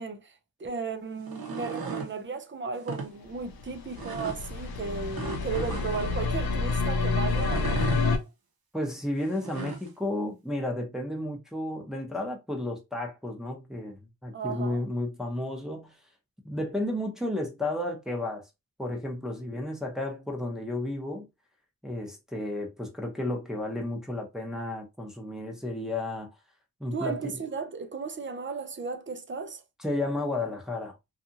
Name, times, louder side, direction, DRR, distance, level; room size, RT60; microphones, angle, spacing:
voice 1, 0.0-8.3 14.3-14.8 26.9-29.6, right 5 dB, 35° right, 0.5 m, -35 dB
sound 1, 1.2-2.1 2.8-3.1 4.0-4.4 5.1-6.1 7.3-8.0 9.2-9.9, right 4 dB, 90° right, 0.8 m, -36 dB
sound 2, 3.4-8.2, left 4 dB, 85° left, 0.6 m, -28 dB
voice 2, 8.7-16.0 16.4-18.5 18.8-21.3 21.8-26.3 26.8-27.4 29.8-31.1, left 1 dB, ahead, 0.7 m, -32 dB
2.7 x 2.4 x 2.6 m
wide cardioid pair, 105°, 36 cm